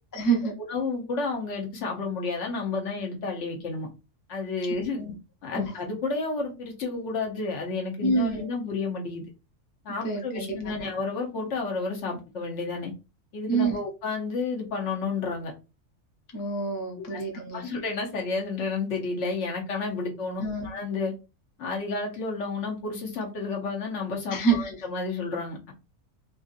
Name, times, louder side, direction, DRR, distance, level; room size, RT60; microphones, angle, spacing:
voice 1, 0.1-0.6 4.9-5.2 5.5-5.8 8.0-8.5 10.0-10.9 13.5-13.8 16.3-17.6 20.4-20.7 24.3-24.9, right 4 dB, 20° left, 0.6 m, -27 dB
voice 2, 0.7-3.9 4.3-5.0 5.4-9.2 9.8-12.9 13.3-15.5 17.0-17.2 17.5-21.1 21.6-25.7, left 4 dB, 65° left, 1.1 m, -31 dB
3.6 x 2.6 x 2.4 m
omnidirectional pair, 1.3 m